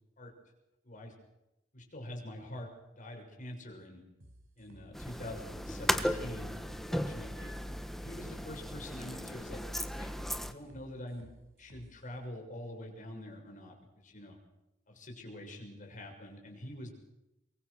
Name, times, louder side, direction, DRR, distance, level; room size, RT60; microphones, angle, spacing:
voice 1, 1.7-4.0 4.6-7.6 8.0-9.6 10.0-10.1 10.4-11.3 11.6-14.4 14.9-16.9, left 1 dB, 40° left, 2 dB, 6.6 m, -45 dB
sound 1, 4.2-12.0, equal, 80° right, 7.8 m, -57 dB
sound 2, 4.9-10.5, equal, ahead, 1.4 m, -36 dB
24.5 x 23.0 x 6.5 m, 0.93 s
head